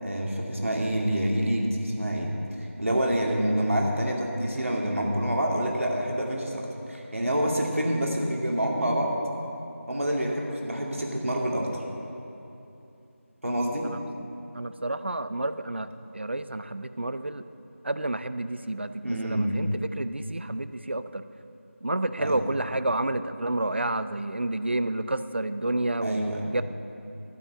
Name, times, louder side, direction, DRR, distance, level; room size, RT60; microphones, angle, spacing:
voice 1, 0.0-2.3 2.8-9.1 9.9-11.8 13.4-13.9 19.0-19.5 22.2-22.4 26.0-26.5, equal, 70° right, -1 dB, 2.2 m, -27 dB
voice 2, 14.5-17.4 17.8-21.2 21.8-26.6, right 2 dB, 50° right, 12 dB, 0.4 m, -30 dB
12.5 x 6.0 x 7.8 m, 2.8 s
figure-of-eight pair, 170°, 8 cm